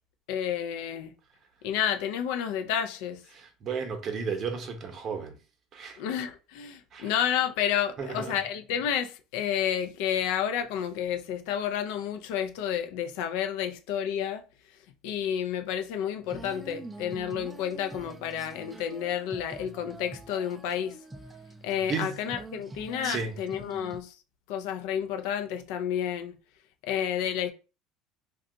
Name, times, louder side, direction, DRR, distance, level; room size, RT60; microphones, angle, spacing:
voice 1, 0.3-1.1 1.6-3.2 6.0-14.4 15.0-21.0 21.6-24.2 24.5-26.4 26.8-27.5, left 9 dB, 75° left, 0.4 m, -30 dB
voice 2, 3.3-5.3 5.7-6.0 6.9-7.1 8.0-8.3 21.8-22.2 23.0-23.3, right 5 dB, 40° right, 0.7 m, -33 dB
Female singing, 16.2-24.0, right 2 dB, 10° right, 0.3 m, -45 dB
2.6 x 2.2 x 3.8 m
supercardioid pair, 120°, 0 cm